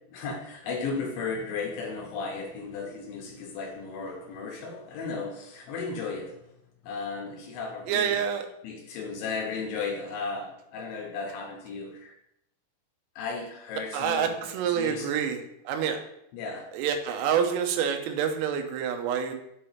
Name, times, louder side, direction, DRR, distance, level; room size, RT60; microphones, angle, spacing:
voice 1, 0.1-6.5 6.8-8.2 8.6-12.1 13.2-14.3 14.7-15.2 16.3-16.7, left 4 dB, 75° left, 0 dB, 3.0 m, -35 dB
voice 2, 7.9-8.5 13.9-16.0 16.7-19.3, right 8 dB, 80° right, 5 dB, 3.4 m, -27 dB
8.0 x 3.4 x 5.6 m, 0.78 s
omnidirectional pair, 5.9 m